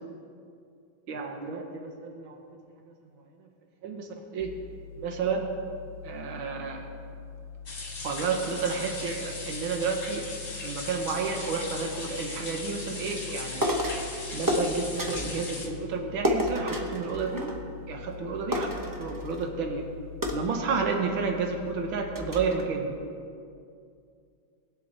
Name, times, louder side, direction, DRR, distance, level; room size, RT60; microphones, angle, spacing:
voice 1, 1.1-2.4 3.8-4.5 5.0-5.5 6.0-6.9 8.0-10.3 10.6-13.8 14.3-17.5 17.9-19.9 20.3-22.9, right 5 dB, 85° right, 3 dB, 1.9 m, -31 dB
sound 1, 4.4-22.2, left 7 dB, 10° left, 2.7 m, -44 dB
sound 2, 7.7-15.7, left 3 dB, 40° left, 2.0 m, -38 dB
sound 3, 13.6-14.1 14.5-15.3 16.2-17.8 18.1-18.2 18.5-19.5 20.2-21.2 21.7-21.8 22.1-22.6, equal, 15° right, 0.6 m, -30 dB
20.5 x 7.6 x 4.0 m, 2.4 s
omnidirectional pair, 2.1 m